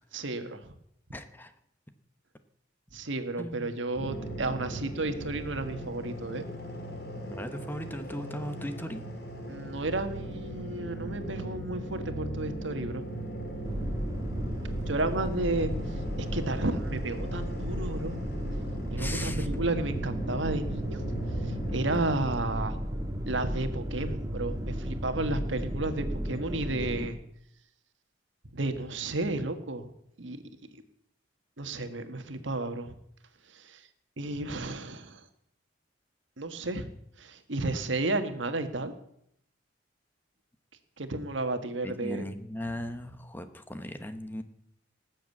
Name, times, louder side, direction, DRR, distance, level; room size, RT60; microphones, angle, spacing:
voice 1, 0.1-0.7 2.9-6.4 9.5-13.1 14.9-15.7 16.2-18.2 18.9-21.0 21.4-22.8 23.3-27.2 28.5-29.9 30.2-30.4 31.6-32.9 33.5-33.8 34.2-35.2 36.4-36.9 37.2-38.9 41.0-42.2, right 2 dB, 75° right, 8 dB, 1.6 m, -32 dB
voice 2, 1.1-1.5 3.4-3.8 7.2-9.1 15.1-15.3 19.0-19.5 41.8-44.4, left 1 dB, 10° left, 9 dB, 0.9 m, -38 dB
sound 1, 3.9-22.0, right 1 dB, 55° left, 2.8 m, -39 dB
sound 2, 13.6-27.1, equal, 20° right, 1.5 m, -34 dB
19.0 x 7.5 x 8.4 m, 0.75 s
head